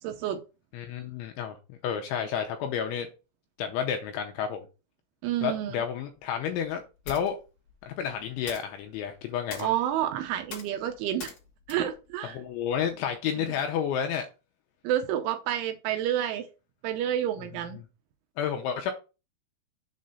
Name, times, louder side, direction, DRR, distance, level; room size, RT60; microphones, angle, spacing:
voice 1, 0.0-0.4 5.2-5.8 9.6-11.3 11.7-12.4 13.4-13.5 14.8-16.5 16.8-17.8, right 11 dB, 80° right, 2.9 m, -29 dB
voice 2, 0.7-3.1 3.6-4.7 5.4-7.4 7.8-9.7 12.2-14.3 18.4-18.9, left 8 dB, 85° left, 2.8 m, -31 dB
sound 1, 6.2-13.1, left 5 dB, 50° left, 2.7 m, -47 dB
7.5 x 3.2 x 5.4 m
omnidirectional pair, 6.0 m